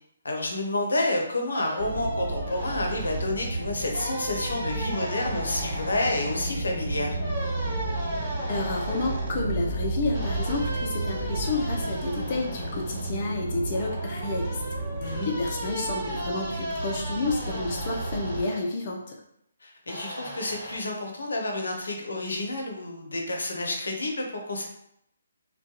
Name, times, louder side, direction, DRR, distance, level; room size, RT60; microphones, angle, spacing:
voice 1, 0.2-7.2 15.0-15.3 19.6-24.7, left 2 dB, 80° left, 1 dB, 0.6 m, -29 dB
sound 1, 1.5-3.2 3.9-6.5 7.2-9.3 10.1-13.1 13.7-18.6 19.9-20.8, right 1 dB, 25° right, 1.3 m, -36 dB
sound 2, 1.8-18.4, right 2 dB, 45° right, 1.1 m, -32 dB
voice 2, 8.5-14.6 15.0-19.2, left 3 dB, 40° left, -1 dB, 0.5 m, -30 dB
2.3 x 2.2 x 2.8 m, 0.76 s
figure-of-eight pair, 145°, 0 cm